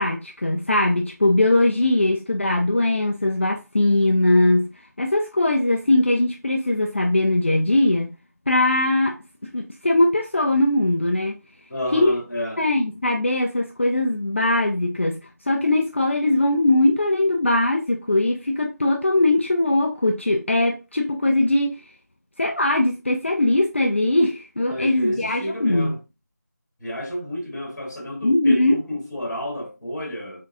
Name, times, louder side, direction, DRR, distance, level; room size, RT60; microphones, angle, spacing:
voice 1, 0.0-4.7 5.0-8.2 8.5-9.2 9.4-11.4 11.9-12.1 12.6-15.2 15.5-21.8 22.4-25.9 28.2-28.7, left 2 dB, 45° left, 0.5 m, -20 dB
voice 2, 11.7-12.6 24.7-26.0 26.8-30.4, equal, 5° left, 1.6 m, -30 dB
5.1 x 3.7 x 2.5 m
figure-of-eight pair, 175°, 10 cm